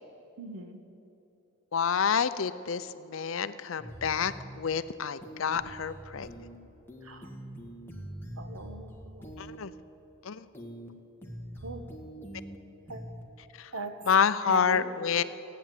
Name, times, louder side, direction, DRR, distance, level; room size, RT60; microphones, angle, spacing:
voice 1, 0.4-0.8 7.0-7.3 8.4-9.5 11.6-11.9 12.9-13.0 13.7-13.9 14.5-14.8, right 3 dB, 90° right, 7 dB, 1.5 m, -39 dB
voice 2, 1.7-6.3 9.4-9.7 10.2-10.5 13.6-13.7 14.1-15.2, left 7 dB, 70° left, 14 dB, 0.6 m, -28 dB
sound 1, 3.8-4.6 5.2-6.6 6.9-9.6 10.5-10.9 11.2-12.6 12.9-13.2, right 1 dB, 10° left, 1.6 m, -44 dB
16.0 x 9.2 x 9.3 m, 3.0 s
head